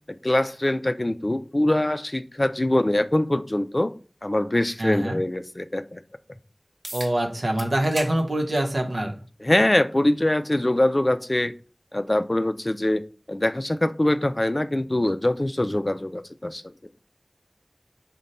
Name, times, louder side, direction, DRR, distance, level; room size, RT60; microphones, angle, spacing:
voice 1, 0.1-3.9 4.2-6.0 9.4-11.5 11.9-16.6, left 1 dB, 40° left, 11 dB, 0.3 m, -23 dB
voice 2, 4.8-5.2 6.9-9.1, right 1 dB, 90° right, 3 dB, 0.8 m, -24 dB
sound 1, 6.8-7.1 7.6-8.1 8.5-8.7 9.8-9.9 14.8-14.9, right 1 dB, 55° right, 0.9 m, -36 dB
5.1 x 2.2 x 4.1 m, 0.37 s
wide cardioid pair, 45°, 0 cm